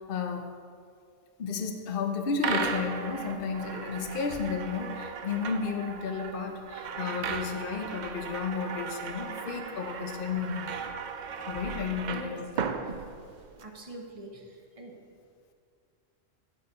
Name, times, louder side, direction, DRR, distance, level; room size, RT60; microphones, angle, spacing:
voice 1, 0.1-0.5 1.4-10.6 11.5-12.7, left 5 dB, 50° left, 4 dB, 0.8 m, -32 dB
sound 1, 2.4-13.6, right 6 dB, 80° right, 0.4 m, -36 dB
voice 2, 13.6-14.9, right 1 dB, 30° right, 1 dB, 0.8 m, -43 dB
8.5 x 4.0 x 6.7 m, 2.2 s
omnidirectional pair, 1.4 m